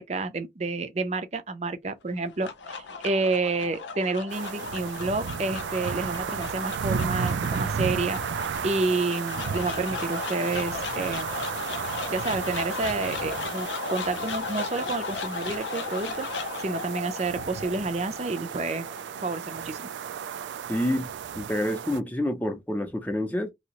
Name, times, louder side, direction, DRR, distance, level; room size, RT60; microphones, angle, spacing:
voice 1, 0.0-8.2 8.6-11.5 12.1-16.3 16.6-18.9 19.2-19.8, right 3 dB, 35° right, 0.5 m, -29 dB
sound 1, 2.1-20.4, left 4 dB, 85° left, 0.5 m, -36 dB
sound 2, 4.3-22.0, right 7 dB, 90° right, 0.3 m, -34 dB
voice 2, 20.7-21.1 21.4-23.5, left 1 dB, 10° left, 0.6 m, -28 dB
2.9 x 2.8 x 2.9 m
head